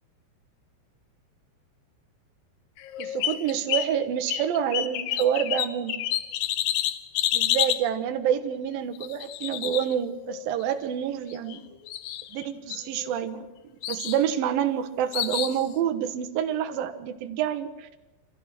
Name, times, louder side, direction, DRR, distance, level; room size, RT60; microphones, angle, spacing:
sound 1, 2.8-3.9 4.3-7.8 8.9-10.4 11.3-11.6 11.9-12.4 12.7-13.4 13.8-14.2 15.1-15.6, left 13 dB, 80° left, 2.0 m, -29 dB
voice 1, 3.0-6.0 7.3-11.7 12.3-13.5 13.9-17.9, right 9 dB, 65° right, 8 dB, 2.7 m, -28 dB
26.5 x 14.5 x 7.7 m, 1.1 s
omnidirectional pair, 5.2 m